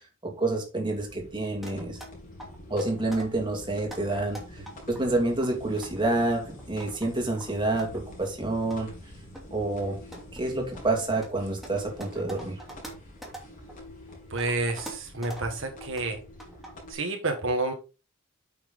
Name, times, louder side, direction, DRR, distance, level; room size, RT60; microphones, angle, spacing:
voice 1, 0.2-2.0 2.7-8.9 9.5-10.0 10.3-12.6, right 2 dB, 25° right, 2.5 m, -28 dB
sound 1, 0.9-16.9, left 1 dB, 40° left, 3.9 m, -46 dB
sound 2, 1.6-2.1 2.4-3.3 3.7-5.0 5.4-7.1 7.3-8.3 8.7-8.8 9.3-9.5 9.9-13.7 14.1-15.5 15.8-16.1 16.4-16.8, right 1 dB, ahead, 2.8 m, -44 dB
voice 2, 14.3-16.2 16.9-17.7, right 2 dB, 65° right, 1.6 m, -29 dB
8.6 x 5.9 x 3.9 m
head